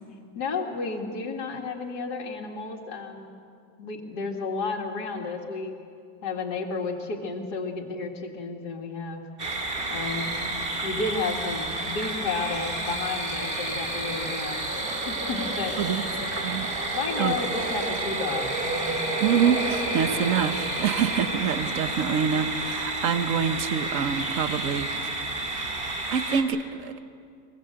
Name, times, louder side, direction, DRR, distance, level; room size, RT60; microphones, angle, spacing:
voice 1, 0.4-3.4 3.8-5.8 6.2-9.2 9.9-10.3 10.8-15.8 16.9-18.9, left 4 dB, 65° left, 0 dB, 2.5 m, -32 dB
sound 1, 9.4-26.4, right 2 dB, 30° right, 2.1 m, -30 dB
voice 2, 19.2-25.1 26.1-26.9, right 7 dB, 55° right, 10 dB, 1.2 m, -26 dB
23.0 x 22.0 x 7.7 m, 2.4 s
omnidirectional pair, 1.9 m